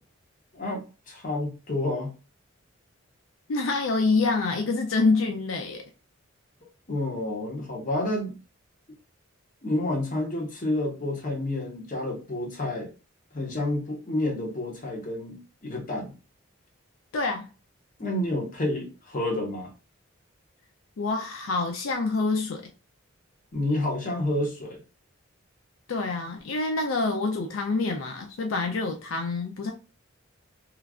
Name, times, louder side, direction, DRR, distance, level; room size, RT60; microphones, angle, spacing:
voice 1, 0.5-2.1 6.9-8.3 9.6-12.9 13.3-16.1 18.0-19.7 23.5-24.8, left 1 dB, 40° left, 0.9 m, -29 dB
voice 2, 3.5-5.8 17.1-17.5 21.0-22.6 25.9-29.7, left 3 dB, 75° left, 0.5 m, -26 dB
3.1 x 2.4 x 2.3 m
head